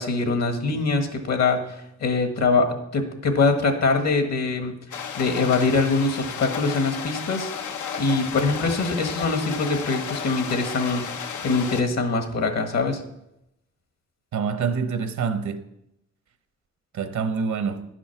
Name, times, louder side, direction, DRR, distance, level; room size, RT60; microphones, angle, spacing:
voice 1, 0.0-1.6 2.0-4.8 5.2-7.5 8.0-11.0 11.4-13.0, left 3 dB, 65° left, 1.6 m, -23 dB
sound 1, 4.9-11.8, left 7 dB, 90° left, 0.8 m, -33 dB
voice 2, 14.3-15.6 16.9-17.9, right 6 dB, 75° right, 0.9 m, -26 dB
11.0 x 6.2 x 5.8 m
cardioid pair, 100°, 29 cm